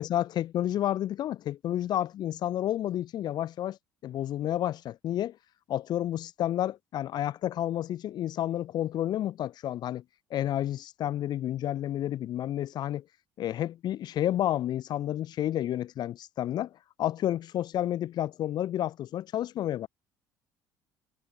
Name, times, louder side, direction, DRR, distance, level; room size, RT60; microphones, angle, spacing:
voice 1, 0.0-3.8 4.0-5.4 5.7-10.0 10.3-13.0 13.4-16.7 17.0-19.9, left 12 dB, 45° left, 0.8 m, -30 dB
figure-of-eight pair, 55°, 10 cm